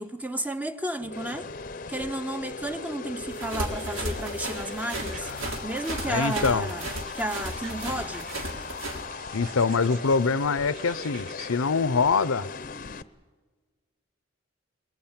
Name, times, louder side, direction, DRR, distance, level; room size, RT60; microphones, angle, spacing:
voice 1, 0.0-1.5 1.9-5.3 5.6-6.9 7.1-8.3, right 1 dB, 10° right, 0.7 m, -32 dB
sound 1, 1.0-13.0, left 4 dB, 40° left, 0.6 m, -38 dB
sound 2, 3.3-9.0, right 1 dB, 80° right, 3.9 m, -35 dB
sound 3, 3.6-5.4 5.7-8.7 9.1-10.2 10.5-11.5, right 4 dB, 40° right, 3.7 m, -47 dB
voice 2, 6.1-6.7 9.3-12.5, left 4 dB, 90° left, 0.7 m, -24 dB
22.0 x 20.5 x 8.8 m
head